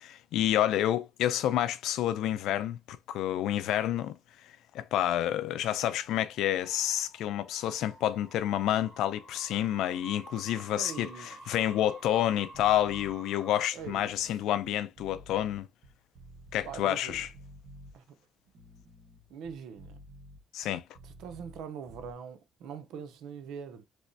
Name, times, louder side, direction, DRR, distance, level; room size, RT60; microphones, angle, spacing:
voice 1, 0.0-4.2 4.7-15.7 16.5-17.3 20.5-20.8, left 12 dB, 90° left, 0.4 m, -29 dB
sound 1, 5.6-13.7, right 2 dB, 30° right, 1.5 m, -51 dB
voice 2, 10.8-11.6 13.7-14.1 16.6-17.3 17.9-18.0 19.3-20.0 21.0-23.8, right 7 dB, 85° right, 0.6 m, -43 dB
sound 2, 12.5-13.1 13.7-16.8 17.1-17.9 18.5-21.6 21.9-22.1, equal, 60° right, 1.5 m, -51 dB
3.4 x 3.1 x 2.7 m
cardioid pair, 90°, 0 cm